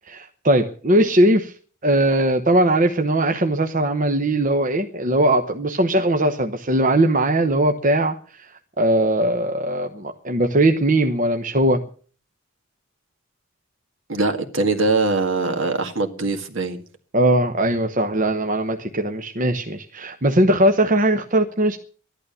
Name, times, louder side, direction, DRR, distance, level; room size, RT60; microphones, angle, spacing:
voice 1, 0.1-1.5 1.8-11.8 17.1-21.8, right 1 dB, 35° right, 0.9 m, -20 dB
voice 2, 14.1-16.8, right 3 dB, 65° right, 2.0 m, -22 dB
14.0 x 11.5 x 6.8 m
head